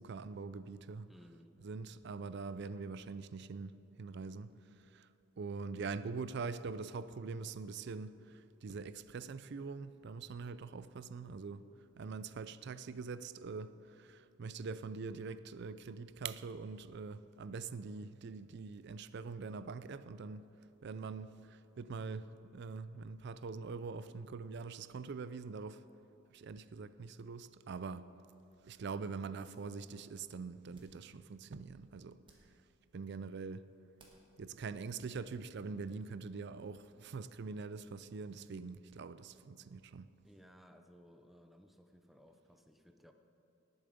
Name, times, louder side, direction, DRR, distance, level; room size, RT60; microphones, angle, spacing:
voice 1, 0.0-1.1 1.6-5.1 5.4-11.7 12.0-20.5 20.8-25.8 26.3-28.1 28.6-32.2 32.9-33.7 34.4-40.1, right 4 dB, 55° right, 0.4 m, -44 dB
voice 2, 1.1-1.5 28.9-29.2 40.2-43.1, equal, ahead, 0.6 m, -60 dB
sound 1, 28.3-35.7, right 2 dB, 25° right, 1.6 m, -72 dB
18.5 x 7.1 x 5.2 m
head